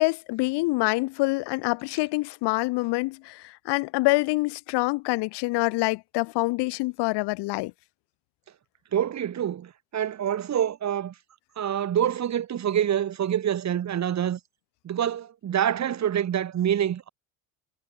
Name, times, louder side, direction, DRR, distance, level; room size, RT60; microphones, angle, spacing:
voice 1, 0.0-7.7, left 23 dB, 70° left, 2.9 m, -26 dB
voice 2, 8.9-11.1 11.6-14.4 14.8-17.1, right 10 dB, 40° right, 1.9 m, -26 dB
supercardioid pair, 80°, 42 cm